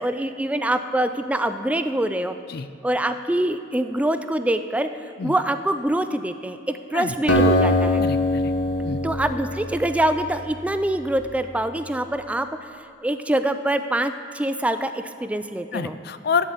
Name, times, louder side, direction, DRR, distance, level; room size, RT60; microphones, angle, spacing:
voice 1, 0.0-2.4 2.8-4.9 5.2-8.0 9.0-16.0, right 1 dB, 10° right, 10 dB, 0.3 m, -25 dB
Acoustic guitar, 7.3-10.9, left 1 dB, 80° left, 1.2 m, -22 dB
voice 2, 8.0-8.5 8.8-9.0 15.7-16.5, left 5 dB, 60° left, 12 dB, 0.5 m, -27 dB
11.0 x 8.1 x 7.3 m, 2.6 s
head